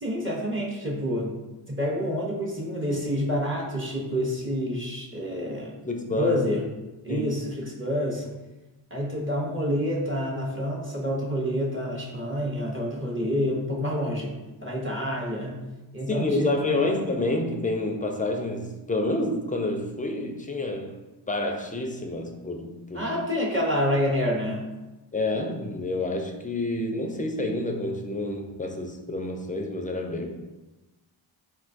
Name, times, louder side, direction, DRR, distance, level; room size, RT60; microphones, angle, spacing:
voice 1, 0.0-1.3 1.7-5.7 6.2-6.6 7.0-8.3 8.9-15.6 15.9-17.0 22.9-24.6, equal, 25° right, -3 dB, 0.7 m, -28 dB
voice 2, 5.8-6.4 7.1-7.3 16.1-21.0 21.3-23.1 25.1-30.3, left 2 dB, 20° left, 2 dB, 0.4 m, -28 dB
3.8 x 2.2 x 2.5 m, 1.1 s
cardioid pair, 45°, 50 cm